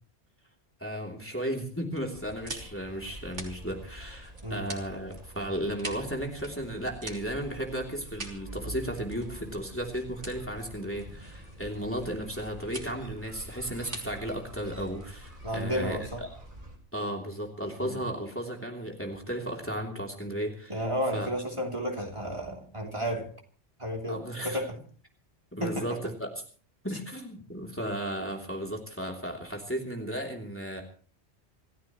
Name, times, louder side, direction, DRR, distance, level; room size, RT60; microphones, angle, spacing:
voice 1, 0.8-16.3 16.9-20.8 21.1-21.3 24.0-24.6 25.5-26.3 26.8-30.8, equal, 10° left, 0 dB, 3.0 m, -35 dB
sound 1, 1.9-16.6, right 2 dB, 80° right, 3.5 m, -46 dB
sound 2, 2.1-16.8, equal, 45° right, 4.5 m, -46 dB
voice 2, 15.4-16.2 17.8-18.0 20.7-23.3 23.8-24.8 25.6-25.9, equal, 25° right, 0 dB, 3.3 m, -32 dB
27.5 x 15.0 x 3.1 m, 0.43 s
omnidirectional pair, 1.2 m